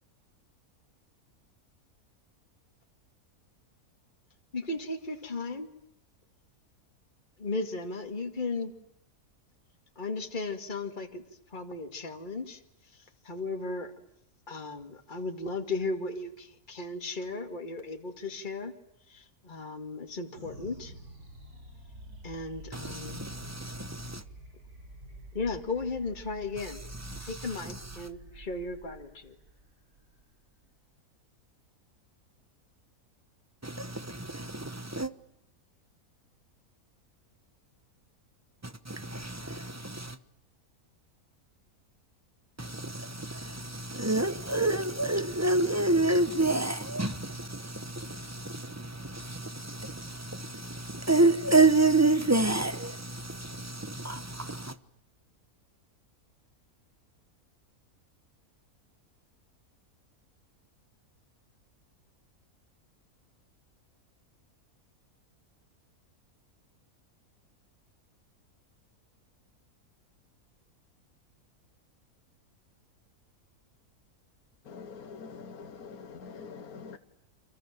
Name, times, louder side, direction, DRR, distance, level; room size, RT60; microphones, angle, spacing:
voice 1, 4.5-5.7 7.4-8.7 10.0-11.2 11.5-12.6 13.2-13.9 14.5-18.7 19.1-20.9 22.2-23.3 25.3-26.8 27.2-29.4, left 3 dB, 30° left, 2.3 m, -35 dB
sound 1, 20.3-31.0, right 2 dB, 90° right, 5.8 m, -49 dB
voice 2, 22.7-24.2 26.6-28.1 33.6-35.1 38.6-40.2 42.6-54.8, right 2 dB, 15° right, 0.9 m, -29 dB
voice 3, 74.6-77.0, left 5 dB, 75° left, 1.8 m, -44 dB
29.0 x 26.5 x 7.5 m
omnidirectional pair, 1.6 m